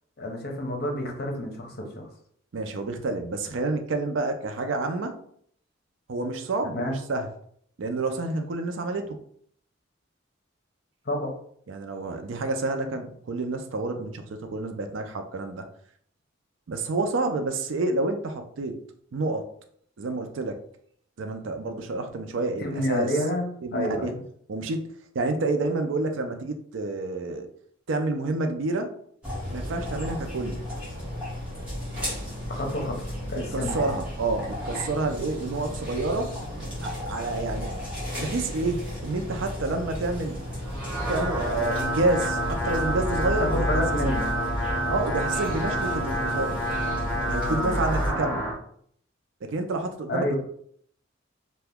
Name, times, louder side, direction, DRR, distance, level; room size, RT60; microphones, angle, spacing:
voice 1, 0.2-2.1 6.7-6.9 11.1-11.3 22.6-24.2 32.5-33.9 43.4-44.3 47.5-47.8 50.1-50.4, left 1 dB, 50° left, 2 dB, 0.7 m, -29 dB
voice 2, 2.5-5.2 6.1-7.3 7.8-9.2 11.7-15.7 16.7-18.8 19.1-19.5 20.0-20.6 21.2-23.1 23.6-24.1 24.5-24.9 25.1-27.5 27.9-28.9 29.5-30.6 33.5-36.3 36.8-37.8 38.1-40.4 41.1-43.7 44.0-44.1 44.9-46.6 47.3-48.5 49.4-50.4, right 2 dB, 70° right, 6 dB, 0.4 m, -29 dB
sound 1, 29.2-48.1, equal, 5° right, 1.1 m, -33 dB
sound 2, 40.6-48.5, right 1 dB, 15° left, 0.8 m, -29 dB
2.8 x 2.2 x 3.4 m, 0.63 s
head